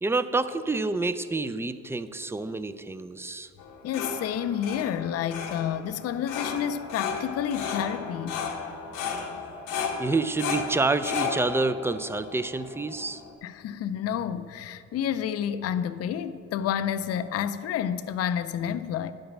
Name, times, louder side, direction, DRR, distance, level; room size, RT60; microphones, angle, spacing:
voice 1, 0.0-3.5 10.0-13.2, right 3 dB, 10° right, 0.3 m, -28 dB
sound 1, 3.6-13.3, left 5 dB, 85° left, 1.0 m, -34 dB
voice 2, 3.8-8.5 13.4-19.1, left 9 dB, 55° left, 0.5 m, -30 dB
10.0 x 5.2 x 6.0 m
cardioid pair, 90°, 30 cm